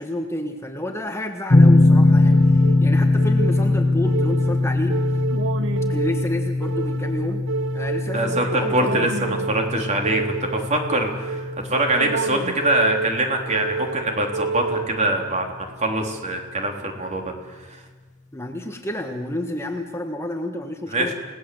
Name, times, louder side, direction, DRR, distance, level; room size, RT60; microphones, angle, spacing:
voice 1, 0.0-5.0 5.9-7.5 7.7-9.1 18.3-21.1, left 1 dB, 15° left, 4 dB, 1.6 m, -30 dB
sound 1, 1.5-14.4, left 2 dB, 35° left, 1.0 m, -21 dB
sound 2, 2.3-15.3, right 4 dB, 60° right, 1.0 m, -30 dB
voice 2, 8.1-17.8 20.9-21.1, right 1 dB, 35° right, 2 dB, 3.7 m, -24 dB
29.5 x 18.5 x 7.9 m, 1.4 s
head